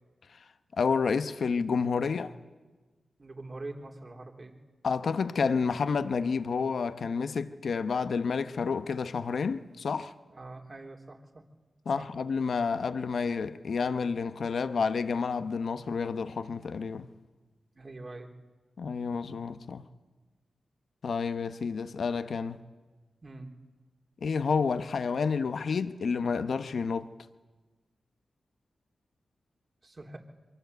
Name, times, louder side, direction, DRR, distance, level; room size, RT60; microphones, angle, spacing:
voice 1, 0.8-2.3 4.8-10.1 11.9-17.1 18.8-19.8 21.0-22.6 24.2-27.1, left 5 dB, 70° left, 1.0 m, -30 dB
voice 2, 3.2-4.5 10.3-11.4 12.0-12.1 17.8-18.3 23.2-23.5 29.8-30.2, right 2 dB, 45° right, 3.6 m, -44 dB
23.5 x 22.5 x 8.2 m
cardioid pair, 50°, 0 cm